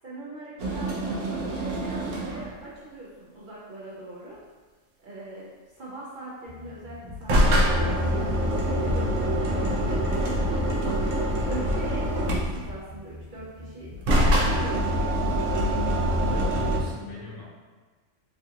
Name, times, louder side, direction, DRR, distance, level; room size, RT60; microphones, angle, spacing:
voice 1, 0.0-4.4 5.0-5.5 5.7-11.0 11.4-15.0, right 1 dB, 55° right, -8 dB, 0.6 m, -41 dB
sound 1, 0.6-2.6 7.0-12.8 13.9-16.8, equal, 80° right, 1.0 m, -25 dB
sound 2, 6.4-16.9, equal, 25° left, 0.9 m, -44 dB
voice 2, 16.1-17.4, left 1 dB, 75° left, -7 dB, 1.3 m, -38 dB
3.3 x 2.4 x 2.7 m, 1.4 s
omnidirectional pair, 1.3 m